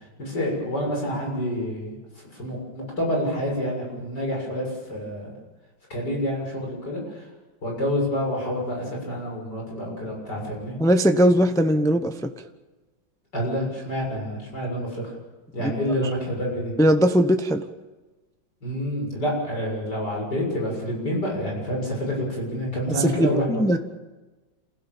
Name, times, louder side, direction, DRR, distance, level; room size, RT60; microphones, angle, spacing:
voice 1, 0.2-2.0 2.3-5.3 5.9-7.2 7.6-10.8 13.3-15.0 15.5-16.7 18.6-23.6, equal, 60° left, -1 dB, 7.5 m, -28 dB
voice 2, 10.8-12.3 15.6-15.7 16.8-17.6 22.9-23.8, equal, 5° left, 7 dB, 0.7 m, -20 dB
28.5 x 16.5 x 7.3 m, 1.2 s
omnidirectional pair, 2.1 m